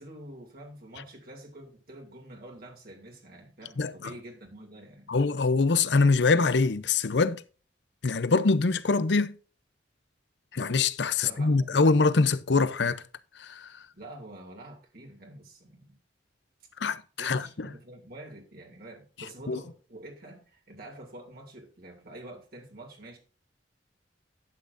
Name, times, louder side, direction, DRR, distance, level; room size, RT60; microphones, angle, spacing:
voice 1, 0.0-5.1 11.1-11.8 13.9-16.0 17.2-23.2, right 1 dB, 55° right, 2.6 m, -47 dB
voice 2, 3.8-4.1 5.1-7.4 8.0-9.3 10.5-13.0 13.4-13.7 16.8-17.5 19.5-19.6, left 4 dB, 65° left, 0.6 m, -24 dB
12.0 x 8.7 x 2.6 m
head